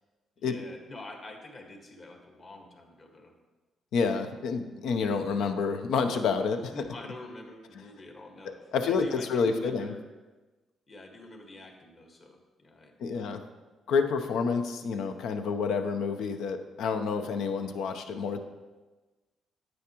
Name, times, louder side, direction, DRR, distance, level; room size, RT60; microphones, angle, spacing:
voice 1, 0.4-3.3 6.7-8.6 8.8-10.0 10.9-13.4 17.6-17.8, left 1 dB, 40° left, 3 dB, 1.5 m, -46 dB
voice 2, 3.9-6.7 8.4-9.9 13.0-13.4 13.9-18.4, left 5 dB, 80° left, 7 dB, 0.7 m, -29 dB
9.6 x 8.7 x 3.0 m, 1.2 s
cardioid pair, 90°, 0 cm